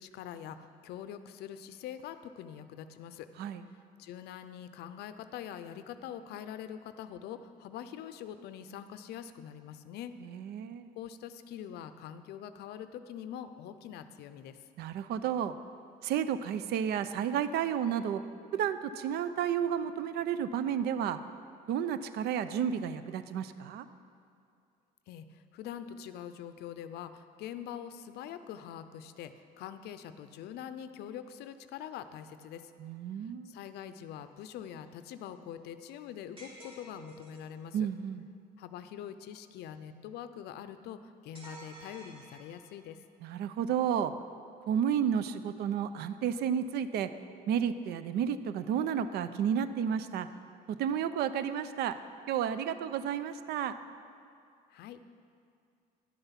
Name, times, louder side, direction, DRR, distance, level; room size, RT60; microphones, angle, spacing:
voice 1, 0.0-3.3 4.0-10.1 11.0-14.6 25.1-32.7 33.2-37.9 38.6-43.0 54.7-55.0, left 9 dB, 80° left, 11 dB, 0.5 m, -44 dB
voice 2, 10.2-10.9 14.8-15.5 16.0-18.2 18.5-21.2 21.7-23.9 32.8-33.6 37.7-38.2 43.2-44.1 44.7-47.1 47.5-50.3 50.7-52.0 52.3-53.7, right 8 dB, 70° right, 12 dB, 0.5 m, -31 dB
sound 1, 36.4-37.5 41.3-42.9, right 1 dB, 35° right, 2.5 m, -51 dB
11.0 x 6.9 x 5.7 m, 2.4 s
cardioid pair, 110°, 17 cm